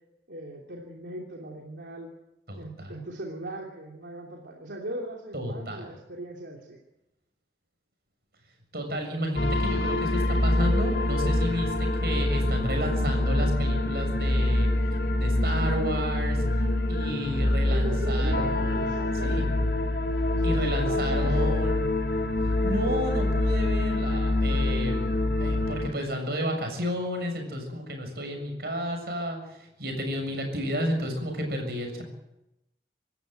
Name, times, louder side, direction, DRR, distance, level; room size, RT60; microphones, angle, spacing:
voice 1, 0.3-2.1 2.6-6.8 17.6-19.6 20.4-21.6, right 1 dB, 80° right, -1 dB, 2.9 m, -39 dB
voice 2, 2.5-2.9 5.3-6.0 8.7-14.7 15.1-16.4 16.9-18.9 19.2-19.4 20.4-21.9 22.6-32.0, equal, 60° right, 4 dB, 7.1 m, -32 dB
sound 1, 9.3-25.9, left 1 dB, 65° left, 2.8 m, -25 dB
26.0 x 14.0 x 9.2 m, 0.90 s
head